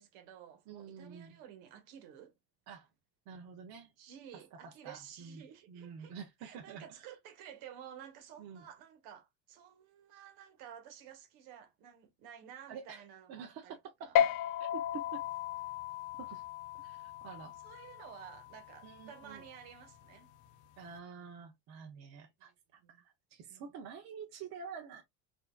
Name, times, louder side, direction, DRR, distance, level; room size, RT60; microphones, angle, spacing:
voice 1, 0.0-2.3 4.0-6.1 6.4-14.2 17.6-20.3 22.8-23.0 23.5-23.7, right 9 dB, 70° right, 1.3 m, -53 dB
voice 2, 0.7-1.4 2.7-2.9 3.3-3.9 4.6-7.1 8.4-8.6 12.7-13.0 13.3-14.3 14.6-15.2 16.2-16.4 16.8-17.5 18.8-19.4 20.8-22.5 22.9-25.0, right 6 dB, 45° right, 0.8 m, -48 dB
sound 1, 14.2-20.9, left 10 dB, 50° left, 0.5 m, -36 dB
4.5 x 2.7 x 2.3 m
cardioid pair, 175°, 39 cm